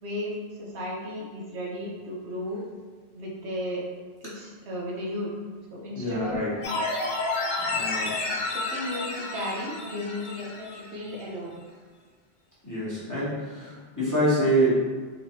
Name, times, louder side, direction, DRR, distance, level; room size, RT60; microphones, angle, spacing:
voice 1, 0.0-2.6 3.1-3.8 4.2-5.3 5.7-6.5 8.3-11.5, left 1 dB, 90° right, -4 dB, 1.1 m, -34 dB
voice 2, 5.9-6.5 7.7-8.1 12.6-14.7, right 1 dB, 20° left, -10 dB, 1.1 m, -26 dB
sound 1, 6.6-10.9 11.2-11.3, left 2 dB, 55° left, 0.6 m, -30 dB
3.8 x 3.0 x 2.8 m, 1.4 s
omnidirectional pair, 1.1 m